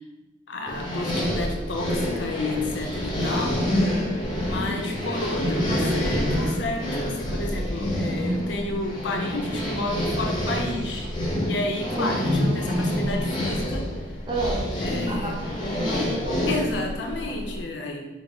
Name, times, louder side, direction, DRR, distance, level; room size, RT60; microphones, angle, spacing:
voice 1, 0.5-3.6 4.4-11.1 11.4-13.9 14.8-15.4 16.5-18.1, left 2 dB, 70° left, 2 dB, 0.6 m, -31 dB
sound 1, 0.7-17.6, equal, 25° left, 0.6 m, -27 dB
voice 2, 12.0-12.3 14.3-14.7 15.1-16.5, right 1 dB, 25° right, -2 dB, 0.6 m, -30 dB
4.6 x 2.0 x 3.9 m, 1.2 s
head